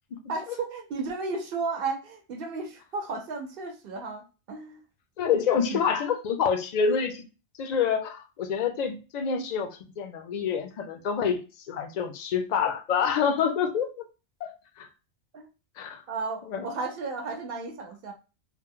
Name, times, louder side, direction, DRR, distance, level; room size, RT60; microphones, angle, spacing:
voice 1, 0.3-4.8 5.6-5.8 15.3-15.5 16.1-18.1, right 4 dB, 60° right, 0.8 m, -34 dB
voice 2, 5.2-7.2 7.6-11.4 11.7-14.0 14.4-14.9 15.8-16.0 16.5-16.7, left 6 dB, 55° left, 0.5 m, -27 dB
2.9 x 2.0 x 3.6 m
omnidirectional pair, 1.1 m